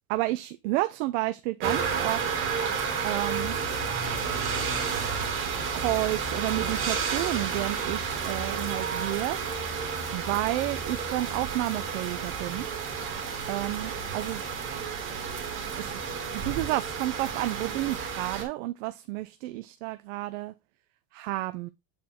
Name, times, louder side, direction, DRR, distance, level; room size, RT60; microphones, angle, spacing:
voice 1, 0.1-2.3 3.0-3.6 5.7-9.4 10.1-12.7 13.5-14.4 15.7-16.1 16.3-20.5 21.1-21.7, right 18 dB, 65° right, 0.6 m, -31 dB
sound 1, 1.6-18.4, right 6 dB, 30° right, 2.3 m, -31 dB
7.7 x 4.6 x 3.5 m
supercardioid pair, 160°, 41 cm